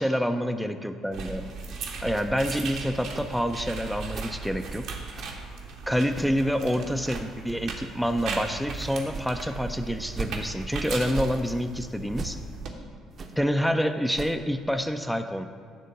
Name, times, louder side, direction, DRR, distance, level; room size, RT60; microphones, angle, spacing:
voice 1, 0.0-1.5 2.0-4.9 5.9-12.4 13.4-15.4, equal, ahead, 6 dB, 0.6 m, -27 dB
sound 1, 1.1-12.7, right 4 dB, 60° right, 1.1 m, -37 dB
sound 2, 2.1-2.3 3.1-3.3 4.1-4.3 5.1-5.3 6.1-6.4 7.1-7.3 8.1-8.4 9.1-9.4 10.1-10.4 11.1-11.4 12.1-12.4 13.1-13.4 14.1-14.4, right 4 dB, 45° right, 0.9 m, -38 dB
10.0 x 3.7 x 6.8 m, 2.1 s
figure-of-eight pair, 50°, 0 cm